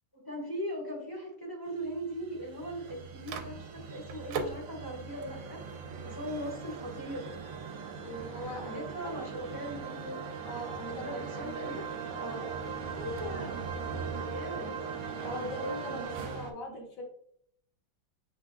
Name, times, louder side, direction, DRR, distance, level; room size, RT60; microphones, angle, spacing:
voice 1, 0.1-7.3 8.7-10.3 10.9-11.8 12.9-13.6 14.2-14.8, equal, 15° left, -3 dB, 0.9 m, -39 dB
sound 1, 1.8-16.5, right 5 dB, 65° right, 0.9 m, -40 dB
Microwave oven, 2.4-16.1, right 5 dB, 80° right, 1.3 m, -47 dB
voice 2, 8.0-8.8 9.1-9.2 10.4-11.5 12.2-12.6 15.2-17.0, left 1 dB, 60° left, 0 dB, 1.7 m, -40 dB
6.2 x 3.5 x 2.3 m, 0.67 s
omnidirectional pair, 2.1 m